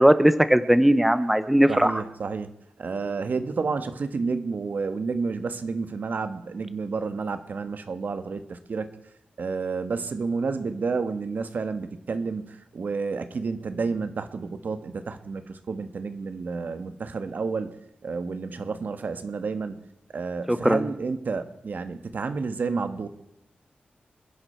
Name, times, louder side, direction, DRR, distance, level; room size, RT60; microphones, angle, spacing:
voice 1, 0.0-2.0 20.5-20.9, right 1 dB, 5° right, 12 dB, 0.8 m, -19 dB
voice 2, 1.7-2.5 2.8-8.9 9.4-17.7 18.0-19.8 20.1-23.1, right 4 dB, 65° right, 9 dB, 1.5 m, -30 dB
28.0 x 10.5 x 4.5 m, 0.86 s
wide cardioid pair, 115°, 3 cm